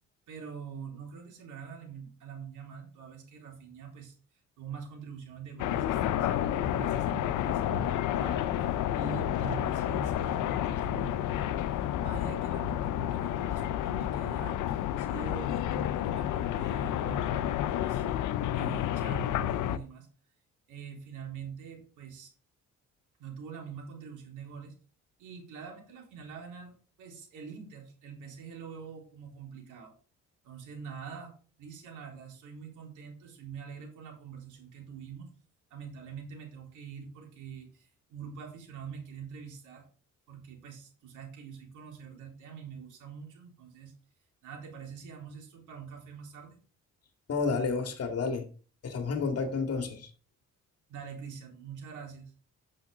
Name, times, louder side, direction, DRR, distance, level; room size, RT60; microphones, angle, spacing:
voice 1, 0.3-4.1 4.6-18.0 18.5-20.1 20.7-22.3 23.2-24.7 25.2-29.9 30.4-35.3 35.7-39.9 40.3-43.9 44.4-46.6 50.9-52.3, right 6 dB, 85° right, 3.9 m, -44 dB
sound 1, 5.6-19.8, left 11 dB, 85° left, 0.7 m, -30 dB
voice 2, 47.3-48.5 48.8-50.1, left 4 dB, 55° left, 2.2 m, -30 dB
9.0 x 7.5 x 3.8 m
cardioid pair, 90°, 30 cm